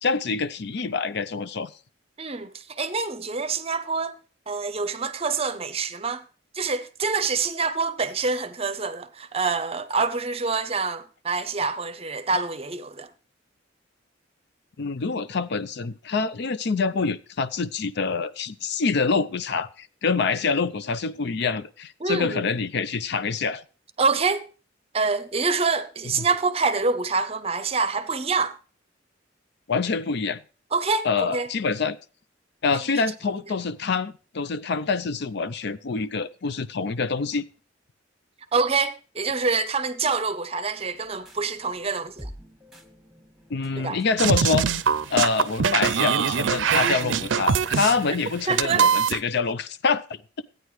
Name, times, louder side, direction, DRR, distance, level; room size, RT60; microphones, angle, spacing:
voice 1, 0.0-1.7 14.8-23.6 26.1-26.3 29.7-30.4 31.0-32.0 32.6-37.4 43.5-44.7 45.1-50.2, left 4 dB, 60° left, 0.5 m, -26 dB
voice 2, 2.2-4.1 4.5-6.2 6.5-13.1 22.0-22.5 24.0-24.5 24.9-28.6 30.7-31.5 38.5-42.3 43.8-44.0 48.5-48.9, right 4 dB, 30° right, 0.7 m, -26 dB
sound 1, 40.8-48.2, equal, 5° right, 1.7 m, -47 dB
sound 2, 44.2-49.2, right 7 dB, 80° right, 0.5 m, -23 dB
14.5 x 9.2 x 3.2 m
head